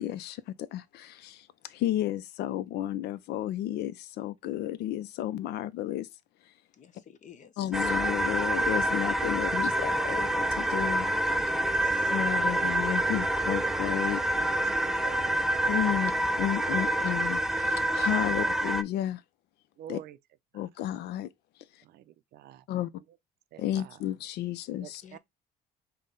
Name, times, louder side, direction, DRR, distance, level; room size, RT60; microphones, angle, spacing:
voice 1, 0.0-6.1 7.6-11.1 12.1-14.2 15.7-16.1 16.4-19.2 19.9-20.0 20.5-21.3 22.7-22.9 23.6-25.0, left 12 dB, 75° left, 0.5 m, -32 dB
voice 2, 6.8-7.5 11.3-12.1 25.0-25.2, left 7 dB, 45° left, 0.8 m, -51 dB
sound 1, 7.7-18.8, right 1 dB, ahead, 0.3 m, -27 dB
voice 3, 14.3-15.6 15.9-16.1 16.8-17.0 18.3-18.5 19.8-20.2 21.8-22.6 23.5-24.0 24.8-25.2, right 11 dB, 70° right, 0.5 m, -47 dB
5.4 x 2.2 x 3.8 m
cardioid pair, 110°, 17 cm